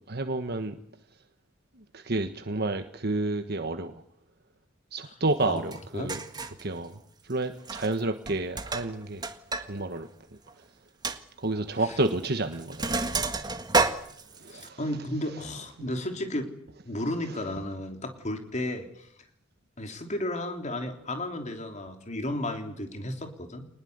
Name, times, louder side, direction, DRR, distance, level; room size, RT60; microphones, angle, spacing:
voice 1, 0.1-0.8 1.7-4.0 4.9-6.2 6.6-7.0 7.2-9.2 9.6-10.1 11.4-13.2 14.3-14.8, right 2 dB, 55° right, 1.4 m, -30 dB
Sink (filling or washing), 5.7-5.8 6.1-6.6 7.6-8.0 8.3-9.7 10.0-10.1 10.5-10.6 11.0-11.2 12.1-12.3 12.5-14.7, right 3 dB, 20° right, 1.7 m, -29 dB
voice 2, 14.5-16.5 16.8-19.1 19.8-23.7, left 1 dB, 35° left, 3.3 m, -33 dB
26.0 x 20.0 x 8.2 m
head